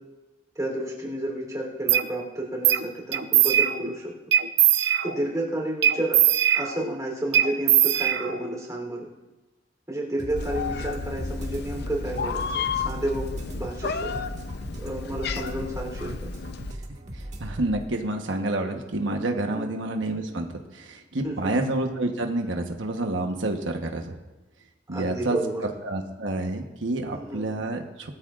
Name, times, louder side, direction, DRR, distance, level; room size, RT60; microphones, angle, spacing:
voice 1, 0.5-4.1 5.0-6.2 6.5-9.1 9.9-14.1 14.8-16.3 19.5-19.7 21.2-21.5 24.9-25.7 27.1-27.4, right 1 dB, 20° right, -1 dB, 3.4 m, -31 dB
sound 1, 1.9-2.1 2.6-2.8 3.1-3.9 4.3-5.3 5.8-7.0 7.3-8.6, right 11 dB, 65° right, 0.7 m, -21 dB
sound 2, 10.2-17.9, right 1 dB, 40° right, 1.7 m, -39 dB
Meow, 10.4-16.7, left 5 dB, 60° left, 0.7 m, -32 dB
voice 2, 17.1-24.2 24.9-25.4 25.6-28.1, right 2 dB, 80° right, 4 dB, 1.2 m, -29 dB
20.0 x 13.5 x 2.5 m, 1.1 s
head